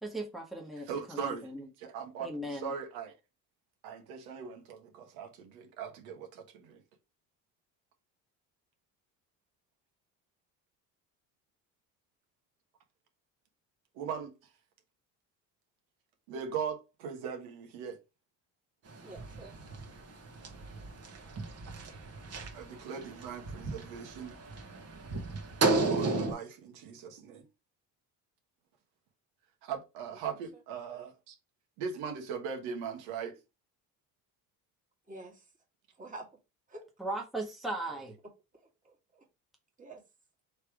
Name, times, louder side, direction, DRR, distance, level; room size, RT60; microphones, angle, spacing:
voice 1, 0.0-1.7 2.2-2.7 37.0-38.1, right 1 dB, ahead, 1.1 m, -38 dB
voice 2, 0.9-1.5 1.8-3.1 3.8-6.8 13.9-14.3 16.3-18.0 22.5-24.4 25.7-27.4 29.6-31.4 31.8-33.4 37.9-38.0, right 7 dB, 85° right, 1.3 m, -39 dB
sound 1, 18.9-26.3, right 3 dB, 45° right, 1.3 m, -34 dB
voice 3, 19.0-19.5 30.1-30.2 35.1-35.4 36.0-36.3 36.7-36.9 38.8-39.2 39.8-40.0, right 2 dB, 20° right, 1.7 m, -47 dB
3.3 x 3.3 x 4.7 m
cardioid pair, 110°, 36 cm